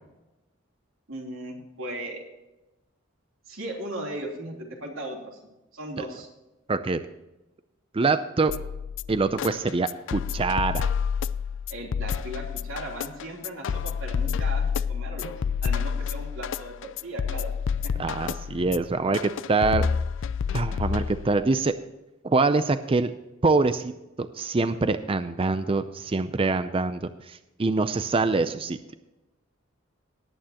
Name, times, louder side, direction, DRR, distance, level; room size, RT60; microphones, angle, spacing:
voice 1, 1.1-2.2 3.5-5.4 5.7-6.3 11.7-15.3 15.6-17.5 17.8-17.9, right 1 dB, 90° right, -1 dB, 3.2 m, -37 dB
voice 2, 6.7-7.0 7.9-8.5 9.1-10.9 18.0-19.9 20.5-21.7 22.2-23.1 23.4-23.9 24.2-28.8, right 3 dB, 25° right, 11 dB, 0.5 m, -24 dB
sound 1, 8.5-21.5, left 6 dB, 65° left, 0.4 m, -29 dB
18.5 x 9.1 x 2.9 m, 1.0 s
head